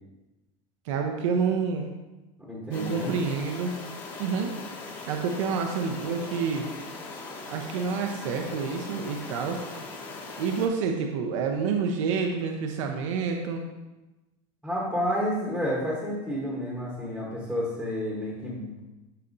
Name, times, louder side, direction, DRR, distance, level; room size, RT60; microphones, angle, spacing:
voice 1, 0.8-1.9 2.7-3.8 4.2-4.5 5.1-6.7 7.5-9.6 10.4-13.7, right 5 dB, 75° right, 3 dB, 0.7 m, -28 dB
voice 2, 2.4-3.1 14.6-18.8, equal, ahead, -5 dB, 1.0 m, -30 dB
sound 1, 2.7-10.7, left 3 dB, 30° left, 1.6 m, -40 dB
12.5 x 4.2 x 2.6 m, 1.1 s
supercardioid pair, 170°, 16 cm